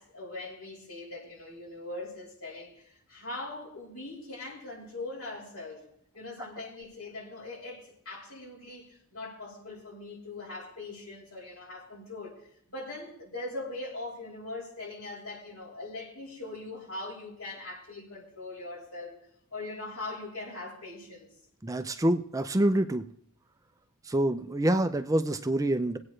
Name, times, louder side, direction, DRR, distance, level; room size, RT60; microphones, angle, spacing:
voice 1, 0.0-5.9 6.1-19.2 19.5-21.3, left 2 dB, 85° left, -4 dB, 5.8 m, -41 dB
voice 2, 21.6-23.1 24.1-26.0, right 1 dB, 15° right, 9 dB, 0.4 m, -26 dB
21.0 x 8.7 x 3.3 m, 0.69 s
head